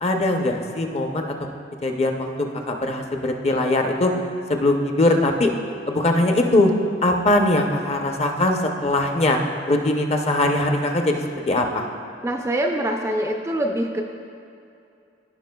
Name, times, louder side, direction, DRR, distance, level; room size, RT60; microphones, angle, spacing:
voice 1, 0.0-1.3 1.8-2.3 2.7-4.1 4.5-5.5 5.9-6.7 7.0-9.4 9.7-11.9, left 2 dB, 35° left, 3 dB, 0.6 m, -21 dB
voice 2, 12.2-14.0, right 1 dB, 15° right, 2 dB, 0.3 m, -24 dB
15.5 x 5.6 x 2.3 m, 2.5 s
head